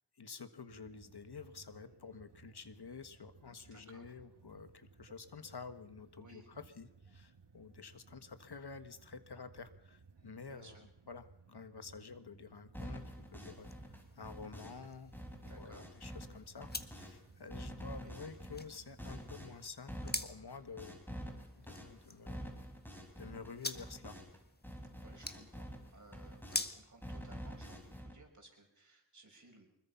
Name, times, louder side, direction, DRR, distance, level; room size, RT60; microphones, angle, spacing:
voice 1, 0.1-15.1 15.4-21.0 21.6-22.4 23.2-24.2, left 5 dB, 70° left, 10 dB, 1.6 m, -50 dB
sound 1, 0.7-19.7, right 4 dB, 80° right, 2.0 m, -61 dB
voice 2, 3.6-4.1 6.2-6.5 10.5-10.8 15.4-15.9 17.9-18.2 25.0-29.7, right 2 dB, 45° right, 2 dB, 5.9 m, -59 dB
sound 2, 12.7-14.9 15.1-17.2 17.5-24.4 24.6-26.7 27.0-28.1, equal, 5° left, 4.7 m, -47 dB
sound 3, 12.8-28.0, left 2 dB, 25° left, 1.5 m, -48 dB
24.5 x 21.5 x 5.8 m, 0.79 s
wide cardioid pair, 80°, 40 cm